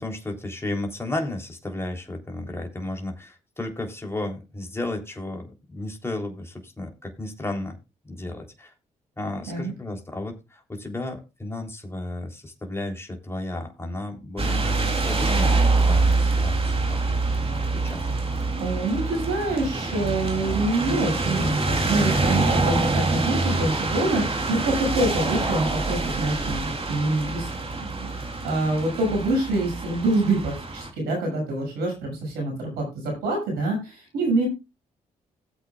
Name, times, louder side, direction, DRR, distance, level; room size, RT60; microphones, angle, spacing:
voice 1, 0.0-7.8 8.0-8.7 9.2-17.0 17.7-18.1, left 2 dB, 15° left, 2 dB, 3.4 m, -33 dB
sound 1, 14.4-30.9, right 3 dB, 35° right, 3.0 m, -25 dB
voice 2, 18.5-27.5 27.8-34.5, right 2 dB, 85° right, 2 dB, 6.6 m, -26 dB
17.5 x 8.1 x 2.4 m, 0.26 s
supercardioid pair, 50°, 16 cm